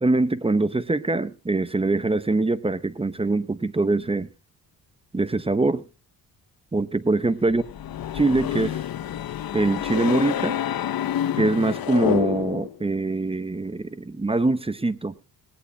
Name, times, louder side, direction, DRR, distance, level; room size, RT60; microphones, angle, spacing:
voice 1, 0.0-4.3 5.1-5.8 6.7-7.6 8.1-8.8 9.5-10.6 11.3-15.1, right 2 dB, 15° right, 0.8 m, -23 dB
sound 1, 7.5-12.8, left 11 dB, 60° left, 0.8 m, -28 dB
20.0 x 18.0 x 2.2 m
cardioid pair, 110°, 40 cm